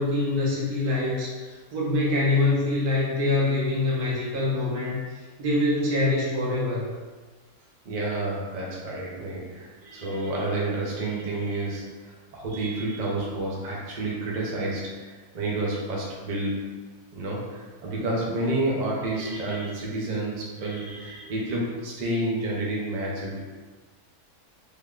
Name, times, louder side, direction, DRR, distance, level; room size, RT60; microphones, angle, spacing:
voice 1, 0.0-5.0 5.4-6.9, left 2 dB, 85° right, -6 dB, 1.4 m, -24 dB
voice 2, 7.8-16.8 17.1-23.4, right 2 dB, 45° right, -4 dB, 0.6 m, -30 dB
3.5 x 2.2 x 3.5 m, 1.4 s
omnidirectional pair, 1.6 m